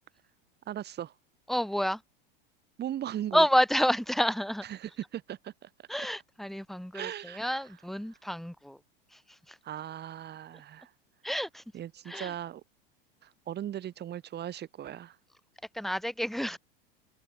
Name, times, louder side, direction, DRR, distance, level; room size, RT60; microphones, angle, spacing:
voice 1, 0.7-1.1 2.8-3.4 4.7-5.7 6.0-6.1 6.9-7.6 9.6-10.9 11.7-12.6 13.2-15.2, right 11 dB, 35° right, 5.0 m, -38 dB
voice 2, 1.5-2.0 3.3-4.6 5.9-8.8 9.1-9.6 11.2-11.6 12.1-12.3 15.7-16.6, equal, ahead, 1.1 m, -29 dB
supercardioid pair, 115°, 29 cm